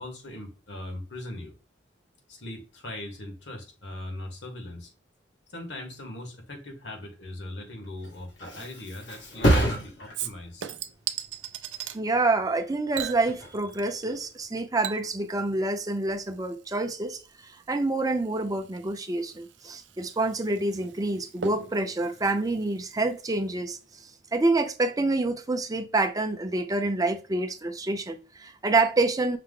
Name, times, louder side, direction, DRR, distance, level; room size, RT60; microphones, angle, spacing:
voice 1, 0.0-1.5 2.3-4.9 5.5-10.7, left 1 dB, 70° left, 1.4 m, -40 dB
Thump thud, 7.8-15.3 15.7-16.1, equal, 90° left, 1.8 m, -31 dB
Chink clink / Liquid, 10.1-12.0 12.9-14.1 14.4-23.4 23.7-23.8, right 10 dB, 75° right, 0.4 m, -40 dB
voice 2, 11.9-23.8 24.3-29.4, right 2 dB, 20° right, 0.5 m, -27 dB
5.7 x 2.0 x 3.7 m
head